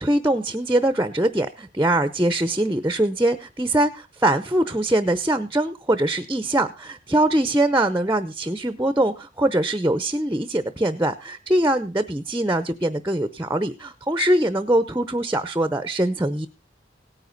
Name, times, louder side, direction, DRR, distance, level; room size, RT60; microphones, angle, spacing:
voice 1, 0.0-16.5, right 1 dB, 15° right, 12 dB, 0.7 m, -22 dB
17.5 x 9.5 x 4.0 m, 0.29 s
head